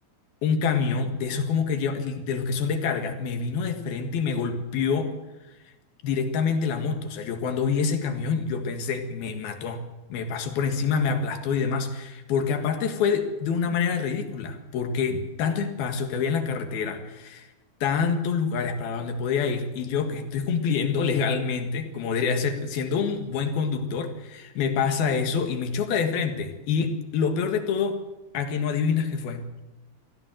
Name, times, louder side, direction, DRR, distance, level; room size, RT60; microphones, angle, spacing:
voice 1, 0.4-5.1 6.0-9.8 10.1-17.5 17.8-28.0 28.3-29.5, left 5 dB, 60° left, 7 dB, 3.3 m, -26 dB
23.5 x 16.5 x 7.8 m, 1.0 s
omnidirectional pair, 5.3 m